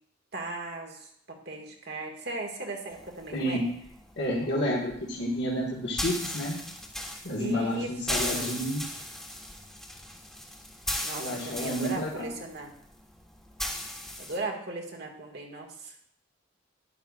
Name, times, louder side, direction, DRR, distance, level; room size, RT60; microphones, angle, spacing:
voice 1, 0.3-3.6 7.4-8.5 11.0-12.7 14.2-15.9, right 2 dB, 60° right, 1 dB, 1.8 m, -37 dB
sound 1, 2.9-14.4, left 1 dB, 5° left, 1.3 m, -37 dB
voice 2, 3.3-3.8 4.2-6.6 7.2-8.9 11.2-12.1, equal, 60° left, -5 dB, 1.7 m, -30 dB
12.0 x 10.0 x 2.4 m, 0.69 s
head